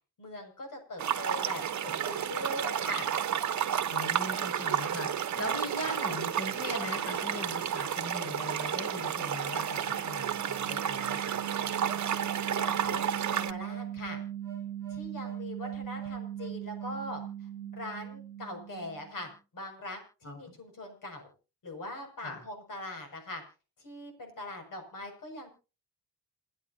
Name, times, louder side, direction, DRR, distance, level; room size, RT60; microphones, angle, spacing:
voice 1, 0.2-3.1 12.5-14.2 14.9-17.2 17.7-21.3 21.6-23.4 23.8-25.5, left 1 dB, 60° left, 5 dB, 6.9 m, -41 dB
sound 1, 1.0-13.5, right 9 dB, 50° right, 1.1 m, -31 dB
voice 2, 3.9-11.4 20.2-20.3 22.2-22.4, left 1 dB, 40° left, 4 dB, 6.8 m, -39 dB
sound 2, 9.1-19.2, right 10 dB, 10° left, 5.7 m, -40 dB
29.0 x 9.8 x 2.8 m, 0.33 s
wide cardioid pair, 135°, 36 cm